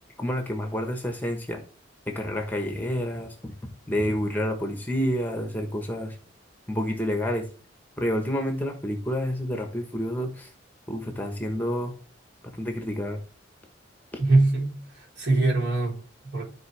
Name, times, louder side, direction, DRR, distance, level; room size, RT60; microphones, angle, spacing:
voice 1, 0.2-1.6 2.1-3.5 3.9-6.2 6.7-7.5 8.0-10.5 10.9-11.9 12.4-13.2, equal, 10° left, 1.1 m, -29 dB
voice 2, 14.2-16.4, right 2 dB, 55° right, 3.8 m, -23 dB
12.5 x 4.5 x 3.3 m
head